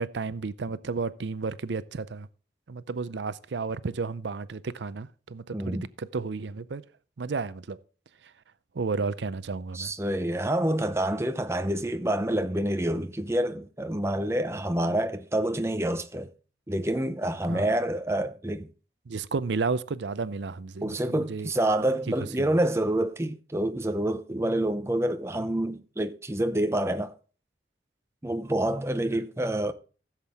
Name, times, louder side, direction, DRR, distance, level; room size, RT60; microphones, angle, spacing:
voice 1, 0.0-2.3 2.7-6.8 7.2-7.8 8.2-8.3 8.7-9.9 17.5-17.7 19.1-21.5 22.1-22.6, right 4 dB, 80° right, 0.5 m, -32 dB
voice 2, 5.5-5.9 9.7-16.3 16.7-18.7 20.8-27.1 28.2-29.7, right 1 dB, 15° right, 0.6 m, -27 dB
15.5 x 7.4 x 3.5 m
head